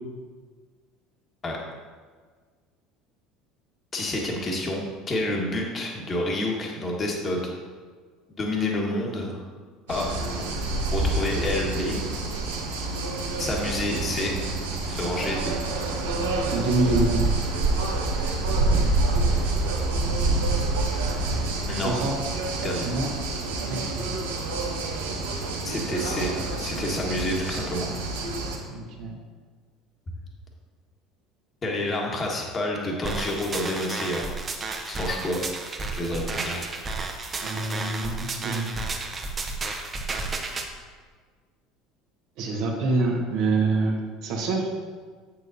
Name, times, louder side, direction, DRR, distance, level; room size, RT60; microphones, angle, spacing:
voice 1, 3.9-7.4 8.3-9.5 9.9-10.1 10.4-10.6 10.9-12.0 13.4-14.3 14.8-15.5 21.7-21.9 22.6-22.9 25.6-27.9 31.6-34.3 34.9-35.4 35.9-36.6, left 1 dB, 35° left, -1 dB, 1.5 m, -29 dB
sound 1, 9.9-28.6, right 2 dB, 85° right, 1.0 m, -27 dB
voice 2, 16.4-17.3 21.8-22.1 22.8-23.1 23.7-23.8 28.7-29.2 37.4-38.7 42.4-44.9, right 3 dB, 65° right, -1 dB, 1.4 m, -26 dB
sound 2, 33.0-40.7, right 3 dB, 30° right, 0.9 m, -32 dB
7.8 x 7.1 x 2.7 m, 1.5 s
hypercardioid pair, 75°, 0 cm